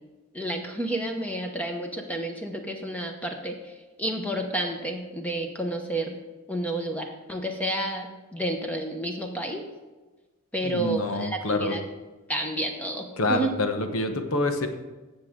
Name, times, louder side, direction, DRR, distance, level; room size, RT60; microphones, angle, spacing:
voice 1, 0.3-6.2 6.5-9.6 10.5-11.8 12.3-13.5, right 1 dB, 5° left, 3 dB, 1.0 m, -30 dB
voice 2, 10.6-11.7 13.2-14.7, left 2 dB, 70° left, 6 dB, 1.0 m, -27 dB
16.0 x 6.3 x 3.7 m, 1.2 s
head